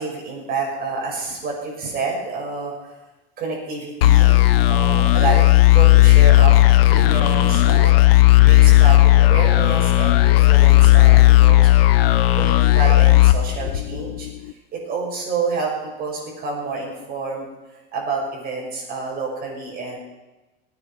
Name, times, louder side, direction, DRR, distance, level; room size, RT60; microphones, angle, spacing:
voice 1, 0.0-2.7 3.4-4.4 4.6-6.6 6.9-7.9 8.4-11.7 12.4-14.3 14.7-17.5 17.9-20.0, right 4 dB, 30° right, -2 dB, 6.4 m, -28 dB
sound 1, 4.0-14.3, left 16 dB, 85° left, 1.0 m, -13 dB
19.5 x 9.7 x 5.9 m, 1.1 s
supercardioid pair, 145°, 29 cm